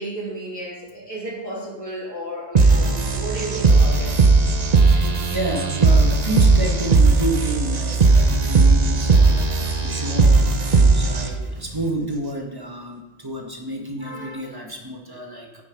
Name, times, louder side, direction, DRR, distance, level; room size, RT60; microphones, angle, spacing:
voice 1, 0.0-4.2, right 1 dB, 15° left, -8 dB, 3.8 m, -33 dB
sound 1, 2.5-11.5, right 3 dB, 45° right, 0.8 m, -17 dB
voice 2, 4.8-10.5 10.8-15.6, right 1 dB, 20° right, 1 dB, 1.6 m, -30 dB
9.5 x 7.7 x 5.3 m, 1.1 s
omnidirectional pair, 1.0 m